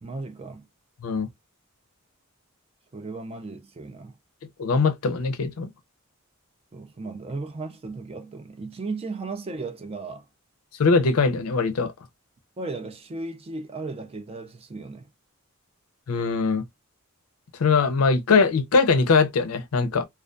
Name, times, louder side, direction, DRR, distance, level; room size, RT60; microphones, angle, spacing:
voice 1, 0.0-0.7 2.9-4.2 6.7-10.3 12.6-15.1, right 3 dB, 25° right, 0.3 m, -35 dB
voice 2, 4.6-5.7 10.8-11.9 16.1-16.6 17.6-20.0, left 4 dB, 90° left, 0.5 m, -21 dB
2.3 x 2.2 x 2.4 m
head